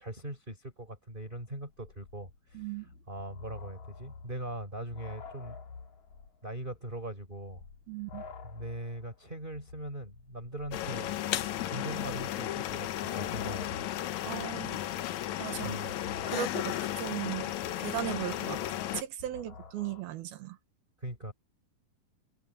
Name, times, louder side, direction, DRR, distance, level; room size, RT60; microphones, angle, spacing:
voice 1, 0.0-5.6 6.4-7.6 8.4-11.2 11.7-13.8 15.6-15.9 21.0-21.3, right 1 dB, 10° right, 6.1 m, -41 dB
sound 1, 1.3-1.4 1.6-6.4 6.7-6.8 7.4-20.0, left 5 dB, 50° left, 4.0 m, -49 dB
voice 2, 2.5-2.9 7.9-8.2 14.2-14.8 15.4-15.8 16.3-17.5 17.8-18.6 18.9-20.6, right 12 dB, 70° right, 3.1 m, -37 dB
sound 2, 10.7-19.0, left 12 dB, 75° left, 1.7 m, -34 dB
omnidirectional pair, 4.6 m